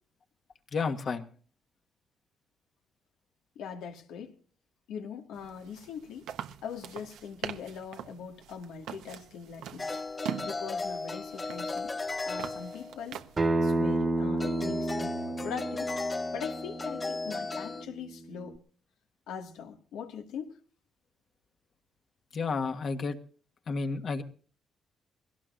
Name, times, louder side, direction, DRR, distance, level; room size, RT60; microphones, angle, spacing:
voice 1, 0.7-1.2 22.3-23.2 23.7-24.2, left 4 dB, 50° left, 1.6 m, -31 dB
voice 2, 3.6-4.4 4.9-6.3 6.6-9.9 10.4-11.9 12.3-13.2 13.6-15.9 16.3-18.6 19.3-20.6, left 7 dB, 90° left, 2.1 m, -41 dB
sound 1, 5.3-13.5, right 10 dB, 85° right, 1.1 m, -43 dB
sound 2, 9.8-13.2 14.4-17.8, left 3 dB, 25° left, 0.7 m, -35 dB
Acoustic guitar, 13.4-18.6, right 2 dB, 35° right, 1.6 m, -31 dB
21.5 x 17.5 x 2.6 m
cardioid pair, 90°, 0 cm